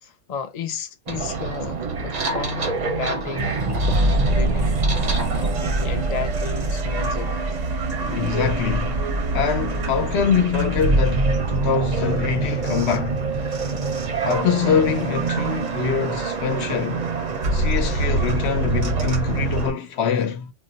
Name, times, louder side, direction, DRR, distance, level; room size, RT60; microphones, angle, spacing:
voice 1, 0.0-3.6 3.9-4.8 5.4-7.4, left 6 dB, 50° left, 0.5 m, -33 dB
sound 1, 1.1-19.7, right 3 dB, 45° right, 0.6 m, -24 dB
voice 2, 8.0-9.0 9.3-13.3 14.2-17.0 17.5-20.5, left 7 dB, 70° left, 0.9 m, -24 dB
2.4 x 2.1 x 3.9 m
omnidirectional pair, 1.2 m